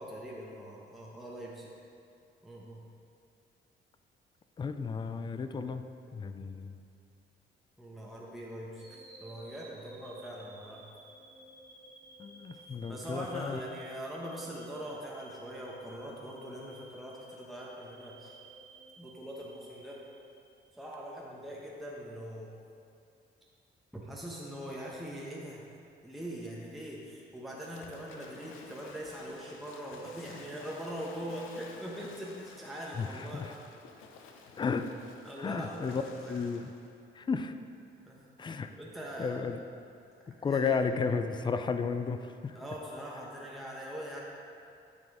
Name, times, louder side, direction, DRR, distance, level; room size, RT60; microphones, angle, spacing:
voice 1, 0.0-1.7 2.4-2.8 7.8-8.8 9.2-10.8 12.9-18.4 19.0-20.0 20.7-22.5 23.9-25.6 26.0-33.5 35.2-36.4 38.1-39.4 40.3-40.8 42.5-44.2, equal, ahead, -5 dB, 1.0 m, -42 dB
voice 2, 4.6-5.8 6.1-6.8 12.2-13.6 33.0-33.5 34.6-34.9 35.4-36.0 36.3-36.7 37.2-37.5 38.4-38.7 39.2-39.6 40.4-42.6, left 5 dB, 25° left, 9 dB, 0.4 m, -33 dB
sound 1, 8.7-20.9, right 1 dB, 55° right, 1.7 m, -55 dB
Waves surf / Splash splatter, 27.6-36.9, left 4 dB, 85° left, 0.6 m, -53 dB
9.4 x 5.0 x 3.6 m, 2.5 s
cardioid pair, 90°, 20 cm